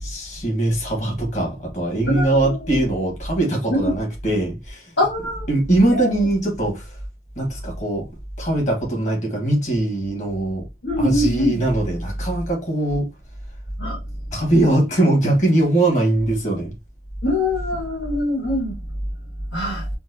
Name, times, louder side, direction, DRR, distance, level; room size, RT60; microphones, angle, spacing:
voice 1, 0.0-4.9 5.5-6.9 7.4-8.1 8.4-10.7 11.0-13.1 14.3-16.7, right 1 dB, 40° left, 1.6 m, -21 dB
voice 2, 2.1-2.8 3.7-4.0 5.0-5.5 5.9-6.2 10.8-11.6 13.8-14.0 17.2-18.8 19.5-19.9, left 1 dB, 85° left, 1.8 m, -23 dB
4.5 x 2.1 x 2.8 m
head